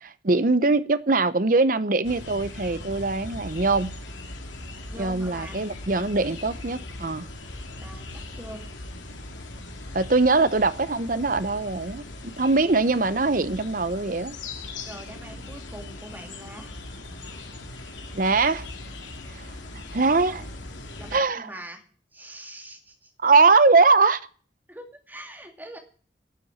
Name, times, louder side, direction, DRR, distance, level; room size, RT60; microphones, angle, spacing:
voice 1, 0.0-4.0 5.0-7.3 9.9-14.4 18.1-18.7 19.3-19.5 19.9-20.5 21.1-21.5 23.2-24.2, right 3 dB, 45° right, 0.8 m, -22 dB
sound 1, 2.0-21.2, left 2 dB, 85° left, 2.8 m, -39 dB
voice 2, 4.9-5.6 7.8-8.6 14.9-16.7 21.0-21.8 22.1-23.1 24.7-25.8, right 1 dB, 10° right, 2.3 m, -43 dB
12.5 x 7.1 x 9.4 m
head